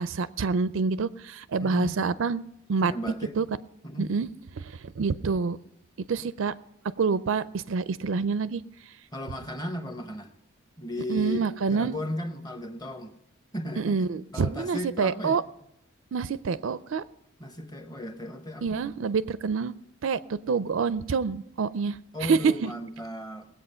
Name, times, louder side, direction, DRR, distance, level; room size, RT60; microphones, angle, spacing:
voice 1, 0.0-2.9 3.3-3.5 4.0-4.3 4.6-5.6 6.1-6.5 7.0-8.6 11.1-12.0 13.8-15.4 16.1-17.0 18.6-19.7 20.0-22.7, right 5 dB, 60° right, 15 dB, 0.4 m, -27 dB
voice 2, 1.6-1.9 2.9-3.3 3.8-4.1 9.1-10.3 10.8-13.1 13.5-14.0 14.3-15.4 17.4-18.8 22.1-23.5, equal, 15° left, 8 dB, 0.9 m, -35 dB
20.0 x 8.2 x 5.6 m, 0.80 s
head